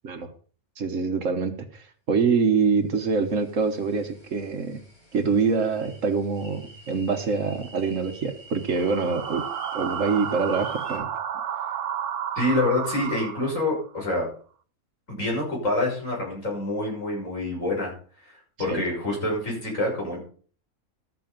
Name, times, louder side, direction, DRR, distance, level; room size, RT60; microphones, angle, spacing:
voice 1, 0.8-4.8 5.1-9.4 9.7-11.1 18.7-18.8, right 5 dB, 60° right, 8 dB, 1.4 m, -25 dB
sound 1, 2.8-11.0, right 1 dB, 85° left, 6.6 m, -48 dB
sound 2, 8.7-13.8, right 9 dB, 85° right, 1.3 m, -32 dB
voice 2, 12.3-14.3 15.1-17.9 18.2-18.3 18.6-20.2, left 2 dB, 60° left, -3 dB, 6.7 m, -26 dB
13.0 x 8.5 x 5.2 m, 0.43 s
omnidirectional pair, 1.5 m